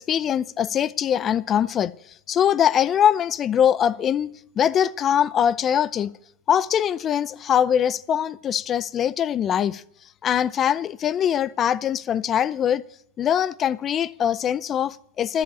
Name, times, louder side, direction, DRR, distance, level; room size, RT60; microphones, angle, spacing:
voice 1, 0.0-1.9 2.3-6.1 6.5-9.8 10.2-12.8 13.2-15.4, left 9 dB, 25° left, 0.4 m, -22 dB
12.5 x 7.7 x 8.3 m
figure-of-eight pair, 90°, 0 cm